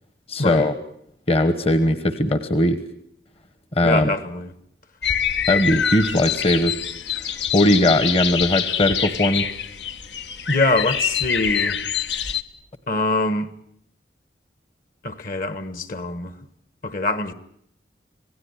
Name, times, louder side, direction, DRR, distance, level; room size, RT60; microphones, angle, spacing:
voice 1, 0.3-0.7 1.3-2.8 3.7-4.1 5.5-6.7 7.2-7.3 7.5-9.5, left 1 dB, 35° left, 1.2 m, -19 dB
voice 2, 3.8-4.5 10.5-11.8 12.9-13.5 15.0-16.4 16.8-17.3, left 2 dB, 50° left, 1.5 m, -24 dB
sound 1, 5.0-12.4, left 8 dB, 80° left, 1.3 m, -25 dB
27.0 x 17.5 x 9.8 m
head